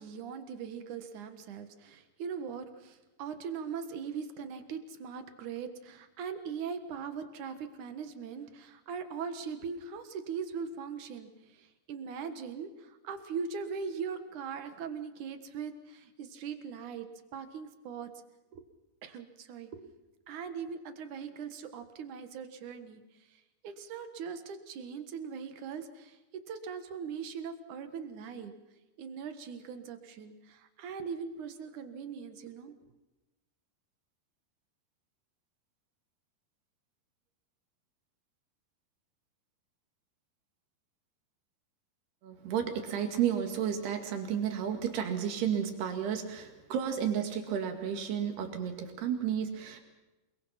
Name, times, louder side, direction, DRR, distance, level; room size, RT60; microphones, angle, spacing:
voice 1, 0.0-17.1 17.3-18.1 18.5-18.6 19.0-19.9 20.3-26.2 26.5-28.5 29.0-32.7, right 6 dB, 60° right, 8 dB, 2.6 m, -40 dB
voice 2, 42.2-49.8, right 8 dB, 85° right, 5 dB, 4.4 m, -32 dB
28.5 x 22.0 x 5.8 m, 1.1 s
omnidirectional pair, 4.5 m